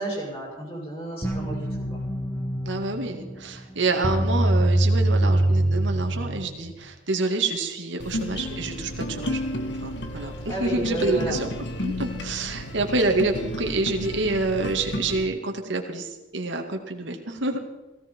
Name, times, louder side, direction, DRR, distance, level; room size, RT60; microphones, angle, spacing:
voice 1, 0.0-2.0 10.4-11.4, right 1 dB, 30° left, -4 dB, 6.9 m, -31 dB
sound 1, 1.2-6.8, right 1 dB, 10° left, 1.7 m, -24 dB
voice 2, 2.7-9.4 9.8-11.5 11.8-17.6, right 3 dB, 75° right, 3 dB, 2.0 m, -27 dB
sound 2, 8.0-15.2, left 1 dB, 65° left, 1.6 m, -32 dB
17.0 x 16.5 x 4.5 m, 1.1 s
head